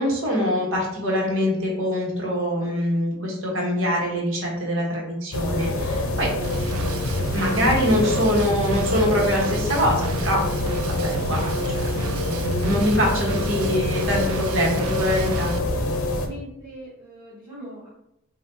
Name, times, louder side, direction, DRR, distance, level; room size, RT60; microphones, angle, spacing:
voice 1, 0.0-6.3 7.3-10.4 10.8-15.5, equal, 65° right, -1 dB, 1.2 m, -24 dB
sound 1, 5.3-16.3, left 2 dB, 70° left, 0.6 m, -26 dB
Drum kit / Drum, 6.4-15.6, right 7 dB, 90° right, 0.3 m, -34 dB
voice 2, 16.2-17.9, equal, 15° right, -13 dB, 1.4 m, -41 dB
5.6 x 2.4 x 2.7 m, 0.82 s
head